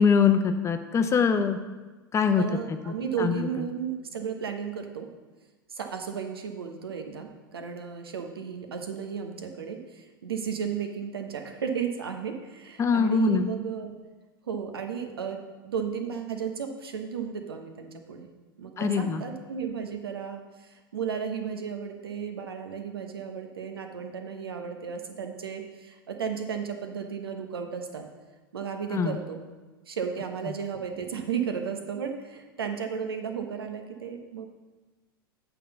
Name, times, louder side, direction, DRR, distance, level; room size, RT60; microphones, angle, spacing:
voice 1, 0.0-1.6 2.1-2.4 3.2-3.5 12.8-13.5 18.8-19.2 28.9-29.2, left 6 dB, 25° left, 7 dB, 0.7 m, -23 dB
voice 2, 2.3-5.1 5.7-13.9 14.5-18.3 18.6-28.0 28.5-29.4 29.9-34.5, right 7 dB, 80° right, 5 dB, 1.0 m, -34 dB
8.4 x 3.9 x 6.9 m, 1.2 s
hypercardioid pair, 90°, 12 cm